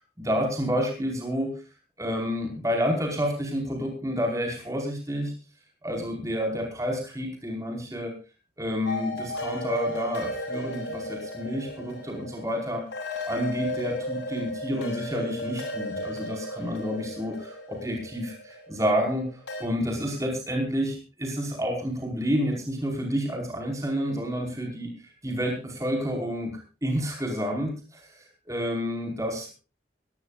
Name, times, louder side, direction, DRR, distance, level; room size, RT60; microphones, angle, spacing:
voice 1, 0.2-1.5 2.0-5.3 5.8-8.1 8.6-12.8 13.2-24.9 25.2-29.5, equal, 20° right, 0 dB, 5.0 m, -29 dB
sound 1, 8.9-19.7, left 1 dB, 90° left, 7.3 m, -35 dB
22.5 x 17.0 x 2.5 m, 0.32 s
head